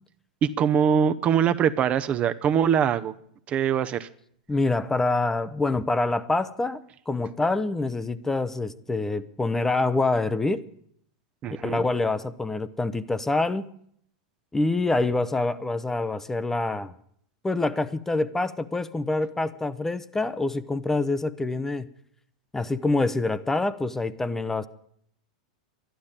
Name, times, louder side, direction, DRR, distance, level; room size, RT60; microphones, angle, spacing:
voice 1, 0.4-3.1 3.5-4.1 11.4-11.8, right 8 dB, 35° right, 11 dB, 0.7 m, -23 dB
voice 2, 4.5-10.6 11.6-13.7 14.5-16.9 17.4-21.9 22.5-24.7, left 2 dB, 10° left, 14 dB, 0.7 m, -26 dB
12.0 x 11.5 x 8.9 m, 0.65 s
hypercardioid pair, 110°, 4 cm